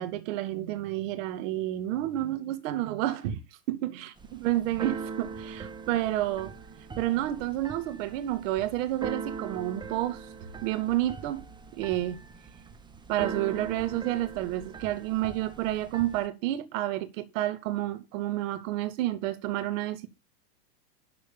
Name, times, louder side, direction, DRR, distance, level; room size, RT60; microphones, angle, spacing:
voice 1, 0.0-3.4 3.7-6.5 7.0-10.3 10.6-11.4 11.7-12.2 13.1-20.1, right 14 dB, 50° right, 2.3 m, -30 dB
Keyboard (musical), 4.2-16.3, right 5 dB, 10° right, 1.0 m, -41 dB
12.0 x 4.7 x 7.0 m
hypercardioid pair, 120°, 49 cm